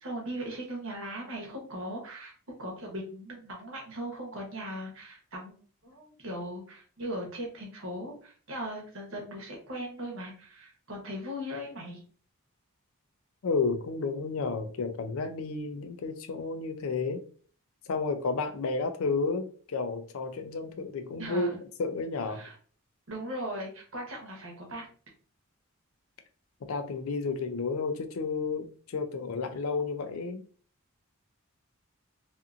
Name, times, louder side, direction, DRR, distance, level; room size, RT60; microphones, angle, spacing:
voice 1, 0.0-2.3 2.6-5.5 5.8-12.0 21.2-21.5 22.3-22.5 23.1-24.9, equal, 65° right, 0.9 m, -38 dB
voice 2, 13.4-17.2 17.9-21.5 21.8-22.4 26.7-30.4, left 4 dB, 70° left, 0.4 m, -31 dB
2.5 x 2.5 x 2.4 m
head